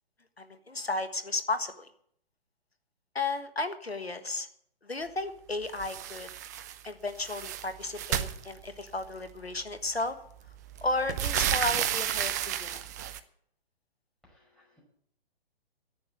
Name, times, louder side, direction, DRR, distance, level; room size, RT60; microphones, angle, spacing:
voice 1, 0.4-1.9 3.1-4.5 4.8-6.3 6.8-10.2 10.8-12.8, left 2 dB, 85° left, 10 dB, 1.5 m, -33 dB
sound 1, 5.8-6.8 7.1-9.0 10.0-10.1 10.5-13.2, right 10 dB, 20° right, 0.5 m, -32 dB
voice 2, 14.2-14.8, left 1 dB, ahead, -4 dB, 5.5 m, -63 dB
10.5 x 8.9 x 9.9 m, 0.68 s
figure-of-eight pair, 130°, 30 cm